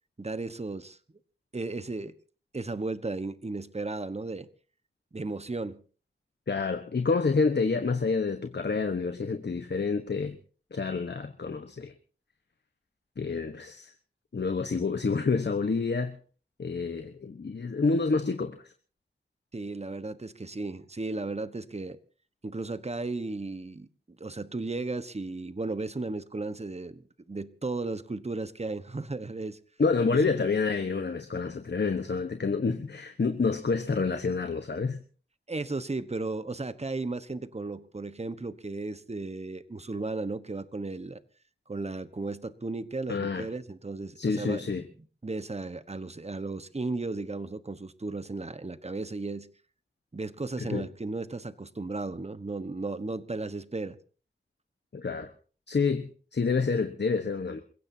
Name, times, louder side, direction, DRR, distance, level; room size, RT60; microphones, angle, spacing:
voice 1, 0.2-1.0 1.5-2.1 2.5-4.5 5.1-5.8 19.5-22.0 22.4-23.9 24.2-29.6 30.1-30.4 35.5-41.2 41.7-44.7 45.2-49.5 50.1-54.0, right 3 dB, 35° right, 1.2 m, -35 dB
voice 2, 6.5-10.4 10.7-11.9 13.2-13.9 14.3-16.2 16.6-18.7 29.8-35.0 43.1-43.5 44.2-44.8 50.6-50.8 54.9-55.3 55.7-57.6, left 4 dB, 60° left, 1.2 m, -28 dB
28.0 x 16.5 x 2.8 m
wide cardioid pair, 60°, 19 cm